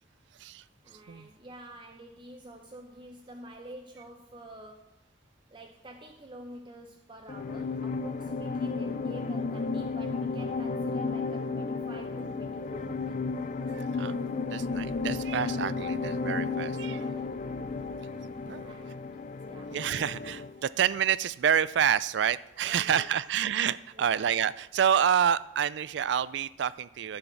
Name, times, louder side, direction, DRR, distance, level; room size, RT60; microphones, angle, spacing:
voice 1, 0.8-5.0 5.5-13.2 16.7-17.4 18.6-19.2 19.4-19.8 22.6-23.1 23.9-24.1, right 1 dB, 25° right, 3 dB, 0.6 m, -48 dB
sound 1, 7.3-20.6, left 4 dB, 40° left, 0.4 m, -33 dB
voice 2, 13.7-17.0 18.5-18.6 19.7-27.2, right 8 dB, 65° right, 18 dB, 0.3 m, -28 dB
9.9 x 6.3 x 5.9 m, 0.85 s
head